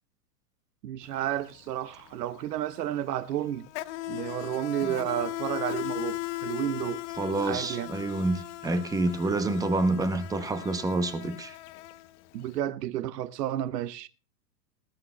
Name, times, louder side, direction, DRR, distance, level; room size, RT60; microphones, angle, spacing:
voice 1, 0.8-3.7 4.1-7.0 7.4-7.9 12.3-14.1, right 12 dB, 70° right, 0.9 m, -31 dB
Insect, 1.0-1.2 1.5-12.5, left 15 dB, 45° left, 0.7 m, -38 dB
voice 2, 7.2-11.6, right 2 dB, 10° right, 0.6 m, -28 dB
19.5 x 14.5 x 2.2 m
hypercardioid pair, 130°, 50 cm